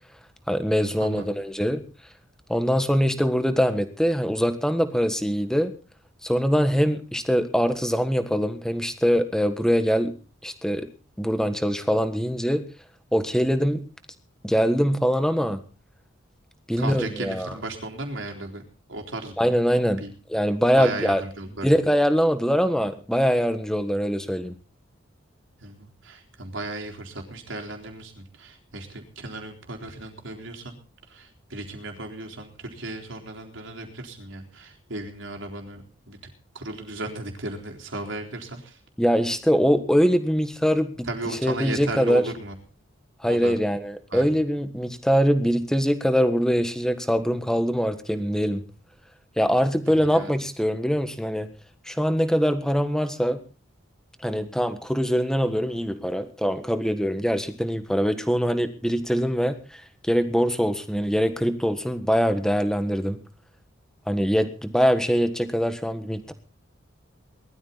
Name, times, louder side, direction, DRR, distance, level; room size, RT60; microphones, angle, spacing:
voice 1, 0.5-1.8 2.5-5.7 6.2-10.1 10.4-10.8 11.2-12.6 13.1-13.8 14.4-15.6 16.7-17.5 19.4-20.0 20.3-21.2 21.6-24.5 39.0-41.1 41.4-42.2 43.2-48.6 49.4-51.5 51.8-53.4 54.2-63.2 64.1-66.3, equal, 5° left, 9 dB, 1.5 m, -23 dB
voice 2, 16.8-18.6 18.9-19.5 20.0-20.1 20.8-21.7 25.6-30.8 31.1-38.8 41.0-42.5 43.2-43.6 44.1-44.3 49.9-50.3, right 2 dB, 70° right, 2 dB, 3.9 m, -35 dB
20.0 x 13.0 x 4.1 m, 0.36 s
head